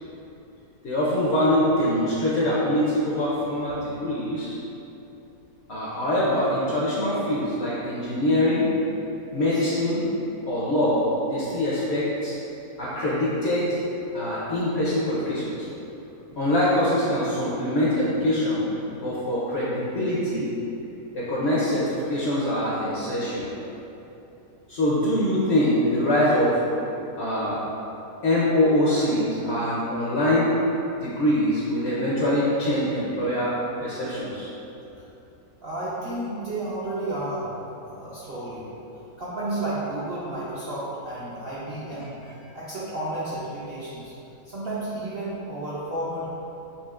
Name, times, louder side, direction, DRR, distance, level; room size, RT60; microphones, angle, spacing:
voice 1, 0.8-4.6 5.7-8.7 9.3-10.0 10.5-12.4 12.8-13.8 14.1-15.7 16.4-20.5 21.1-23.5 24.7-26.6 27.2-27.6 28.2-30.5 31.0-34.5, left 1 dB, 65° left, -7 dB, 0.7 m, -24 dB
voice 2, 7.1-7.4 9.3-9.7 16.3-16.7 35.6-37.5 37.9-38.7 39.2-42.1 42.5-44.1 44.4-46.3, right 1 dB, 60° right, -9 dB, 0.6 m, -32 dB
5.6 x 2.7 x 2.4 m, 2.9 s
omnidirectional pair, 1.6 m